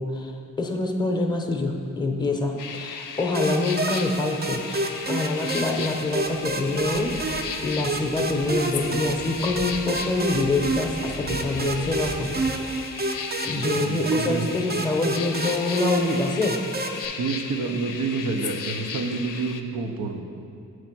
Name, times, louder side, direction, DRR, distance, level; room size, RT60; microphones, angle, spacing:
voice 1, 0.0-13.0 13.4-16.6, left 2 dB, 15° left, 2 dB, 0.7 m, -26 dB
sound 1, 2.6-19.6, left 6 dB, 70° left, 0.5 m, -36 dB
sound 2, 3.3-17.1, right 2 dB, 30° right, 0.5 m, -30 dB
sound 3, 6.1-12.5, equal, 65° right, 1.2 m, -42 dB
voice 2, 13.5-14.4 17.2-20.2, right 4 dB, 80° right, 4 dB, 0.7 m, -29 dB
7.7 x 3.2 x 5.9 m, 2.5 s
cardioid pair, 60°, 33 cm